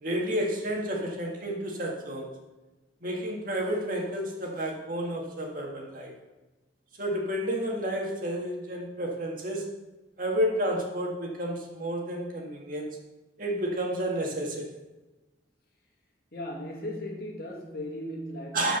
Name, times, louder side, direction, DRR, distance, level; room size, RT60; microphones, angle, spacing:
voice 1, 0.0-2.3 3.0-6.1 7.0-9.7 10.2-12.9 13.4-14.7 18.5-18.8, equal, 50° right, 0 dB, 1.9 m, -31 dB
voice 2, 16.3-18.8, left 1 dB, 55° left, -1 dB, 2.1 m, -37 dB
13.0 x 5.1 x 5.6 m, 1.1 s
head